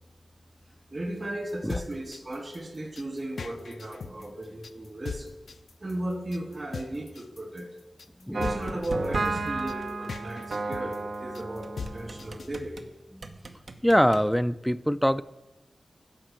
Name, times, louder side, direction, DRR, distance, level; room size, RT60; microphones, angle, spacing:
voice 1, 0.9-5.3 5.8-7.7 8.3-12.8, right 1 dB, 40° right, 3 dB, 2.0 m, -35 dB
sound 1, 1.5-12.5, left 5 dB, 85° left, 0.5 m, -40 dB
sound 2, 8.3-12.9 13.2-14.2, right 3 dB, 70° right, 0.9 m, -33 dB
voice 2, 13.8-15.2, equal, ahead, 13 dB, 0.3 m, -23 dB
12.0 x 5.1 x 7.4 m, 1.0 s
wide cardioid pair, 70°, 0 cm